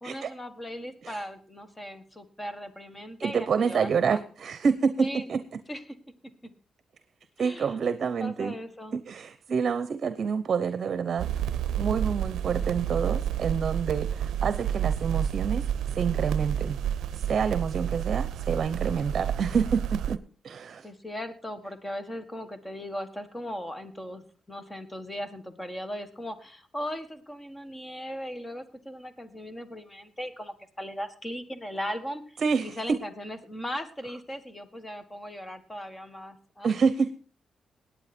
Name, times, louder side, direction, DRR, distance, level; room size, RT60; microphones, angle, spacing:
voice 1, 0.0-4.2 5.0-5.3 5.7-5.8 6.4-6.5 7.4-7.8 8.0-9.0 20.8-36.7, equal, 15° left, 10 dB, 1.7 m, -38 dB
voice 2, 3.2-5.4 7.4-8.5 8.9-11.4 11.8-15.7 15.9-16.8 17.1-20.9 32.4-33.0 36.6-37.1, right 6 dB, 55° right, 12 dB, 0.8 m, -28 dB
sound 1, 11.2-20.2, right 9 dB, 90° right, 0.5 m, -30 dB
18.0 x 9.1 x 4.4 m, 0.39 s
cardioid pair, 105°, 0 cm